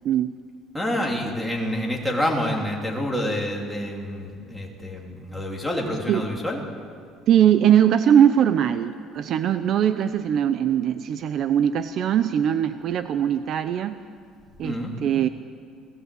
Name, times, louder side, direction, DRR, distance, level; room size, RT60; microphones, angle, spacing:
voice 1, 0.7-6.6 14.6-14.9, left 1 dB, ahead, -2 dB, 3.0 m, -27 dB
voice 2, 7.3-14.0 14.6-15.3, right 9 dB, 45° right, 11 dB, 0.7 m, -21 dB
29.5 x 18.5 x 8.4 m, 2.2 s
cardioid pair, 175°, 0 cm